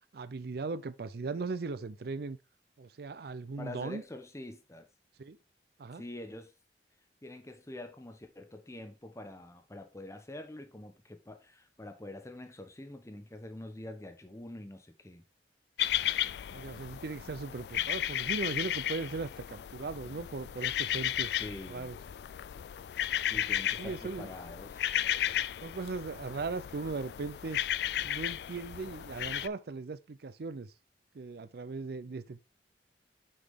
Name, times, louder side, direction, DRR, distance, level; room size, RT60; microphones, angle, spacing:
voice 1, 0.1-2.4 2.8-4.0 5.2-5.4 5.8-6.0 16.5-21.3 21.7-22.0 23.8-24.3 25.6-27.6 28.0-30.7 31.1-32.4, right 4 dB, 60° right, 0.5 m, -38 dB
voice 2, 3.6-4.9 5.9-6.5 7.2-15.2 21.4-21.9 23.3-24.8, left 1 dB, 15° left, 0.9 m, -45 dB
sound 1, 15.8-29.5, left 11 dB, 65° left, 0.3 m, -34 dB
6.4 x 6.0 x 3.6 m
head